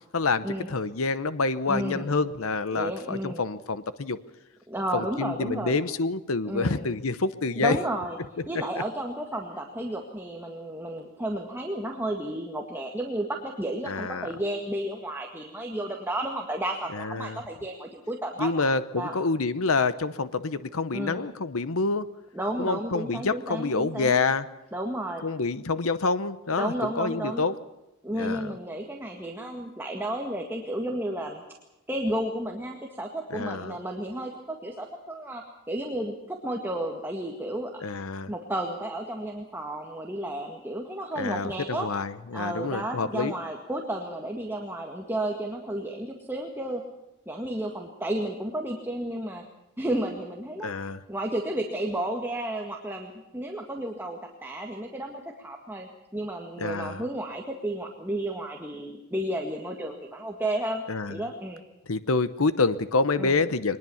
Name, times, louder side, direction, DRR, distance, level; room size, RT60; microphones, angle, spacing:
voice 1, 0.1-4.2 4.9-7.8 13.9-14.3 16.9-17.4 18.4-22.1 22.6-24.5 25.2-27.5 28.2-28.5 33.3-33.8 37.8-38.3 41.2-43.3 50.6-51.0 56.6-57.0 60.9-61.2 61.9-63.8, left 3 dB, 70° left, 13 dB, 0.9 m, -27 dB
voice 2, 1.7-2.1 2.7-3.4 4.7-5.8 6.5-6.9 7.6-8.2 8.5-18.5 19.0-19.1 20.9-21.2 22.3-24.2 24.7-25.2 26.6-27.4 28.0-31.4 31.9-37.7 38.3-41.9 42.3-46.8 47.3-49.4 49.8-50.7 51.1-60.8 61.1-61.6 63.2-63.4, right 1 dB, 10° right, 1 dB, 1.8 m, -32 dB
23.0 x 20.0 x 7.2 m, 0.94 s
head